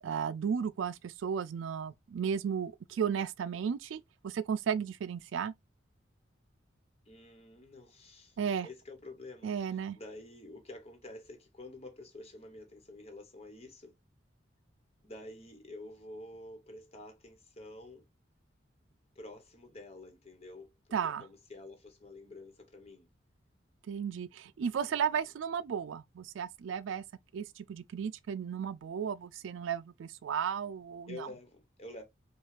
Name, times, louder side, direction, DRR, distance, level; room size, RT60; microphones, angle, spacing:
voice 1, 0.0-5.5 8.4-8.7 9.4-10.0 20.9-21.3 23.9-27.0 27.3-31.3, right 7 dB, 80° right, 0.3 m, -34 dB
voice 2, 7.0-13.9 15.0-18.1 19.1-23.1 24.9-25.3 31.1-32.0, left 2 dB, 30° left, 1.2 m, -49 dB
5.3 x 2.4 x 3.3 m
head